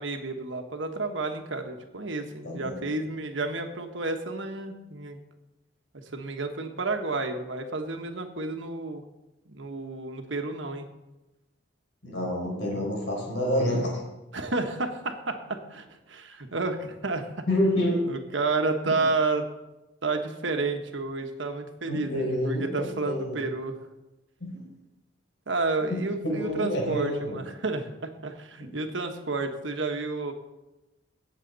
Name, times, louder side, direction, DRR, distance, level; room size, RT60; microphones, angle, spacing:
voice 1, 0.0-5.2 6.1-9.0 9.5-10.9 14.3-17.5 18.1-19.4 20.0-23.8 25.5-30.3, right 3 dB, 80° right, 5 dB, 1.3 m, -31 dB
voice 2, 12.0-14.0 17.5-18.1 18.8-19.0 21.9-23.4 24.4-24.6 25.9-26.0 26.2-27.4, equal, 75° left, -1 dB, 5.0 m, -28 dB
16.5 x 7.5 x 4.1 m, 1.0 s
head